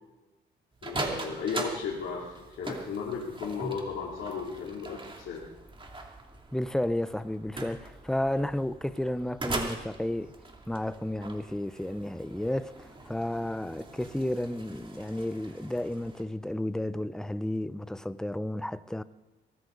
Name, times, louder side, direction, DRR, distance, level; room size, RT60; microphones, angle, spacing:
sound 1, 0.7-16.2, right 2 dB, 25° right, 2.8 m, -41 dB
voice 1, 0.8-5.4, left 5 dB, 80° left, 3.0 m, -35 dB
voice 2, 6.5-10.3 10.7-19.0, left 1 dB, 5° left, 0.6 m, -32 dB
22.0 x 14.5 x 4.0 m
cardioid pair, 90°, 20 cm